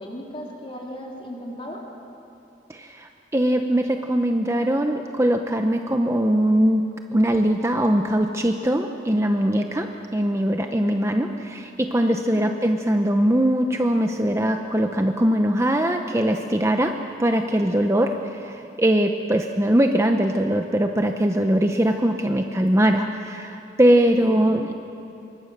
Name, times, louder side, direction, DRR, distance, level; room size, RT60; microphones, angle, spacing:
voice 1, 0.0-1.8 10.8-11.0 12.2-12.4 24.2-24.5, equal, 30° left, -2 dB, 4.0 m, -37 dB
voice 2, 2.7-6.8 7.1-16.9 17.2-24.7, right 1 dB, 15° right, 4 dB, 0.8 m, -21 dB
25.5 x 23.0 x 6.7 m, 2.8 s
head